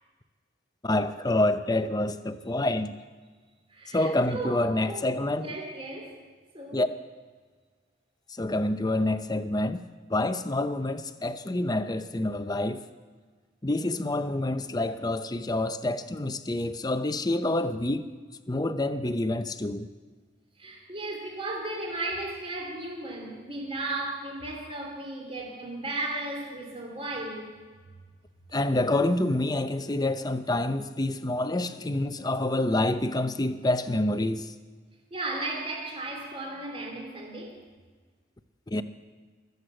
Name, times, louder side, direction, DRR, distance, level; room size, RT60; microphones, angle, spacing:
voice 1, 0.8-2.9 3.9-5.5 6.7-6.9 8.4-9.8 10.1-12.8 13.6-18.1 18.5-19.9 28.5-34.5 38.7-38.8, left 1 dB, 20° left, 0.7 m, -27 dB
voice 2, 3.7-5.1 5.4-6.2 6.5-6.8 20.6-27.6 35.1-37.6, right 2 dB, 30° right, 2.8 m, -35 dB
23.0 x 8.1 x 7.8 m
head